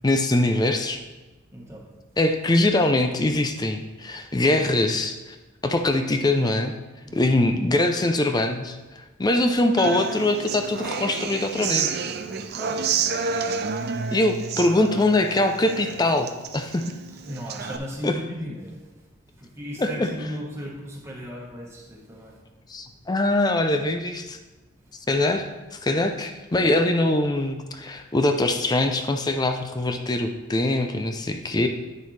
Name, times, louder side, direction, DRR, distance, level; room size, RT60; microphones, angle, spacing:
voice 1, 0.0-1.0 2.2-5.2 5.6-6.7 7.1-8.8 9.2-11.9 14.1-16.3 16.5-16.9 18.0-18.1 19.8-20.1 22.7-24.4 25.1-31.7, left 2 dB, 20° left, 6 dB, 0.4 m, -22 dB
voice 2, 1.5-1.9 7.0-7.3 12.3-13.0 17.1-18.9 19.4-22.4 31.5-31.7, equal, 15° right, -3 dB, 1.3 m, -36 dB
Human voice / Acoustic guitar, 9.8-17.8, right 6 dB, 50° right, 0.5 m, -30 dB
8.8 x 6.6 x 3.3 m, 1.1 s
head